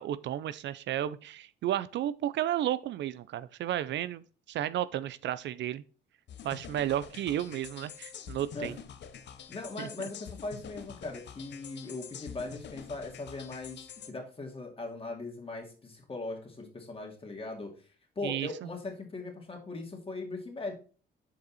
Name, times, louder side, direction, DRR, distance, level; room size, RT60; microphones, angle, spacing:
voice 1, 0.0-5.8 6.4-8.8 9.8-9.9 18.2-18.5, right 12 dB, 65° right, 0.4 m, -33 dB
sound 1, 6.3-14.1, left 8 dB, 60° left, 0.8 m, -46 dB
voice 2, 9.5-17.7 18.2-20.7, left 3 dB, 30° left, 2.3 m, -39 dB
6.8 x 5.3 x 4.1 m
cardioid pair, 90°, 20 cm